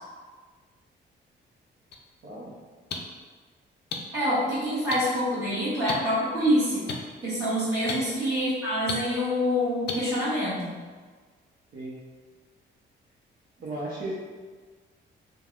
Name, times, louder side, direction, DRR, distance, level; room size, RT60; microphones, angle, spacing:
sound 1, 1.9-2.0 2.9-3.0 3.9-4.0 4.9-5.0 5.9-6.0 6.9-7.0 7.9-8.0 8.9-9.0 9.9-10.0, left 6 dB, 60° left, 0.4 m, -30 dB
voice 1, 4.1-6.9 7.2-10.7, equal, 15° right, -15 dB, 1.3 m, -26 dB
voice 2, 13.6-14.1, right 2 dB, 65° right, -8 dB, 0.8 m, -36 dB
3.3 x 2.2 x 2.4 m, 1.5 s
cardioid pair, 90°, 20 cm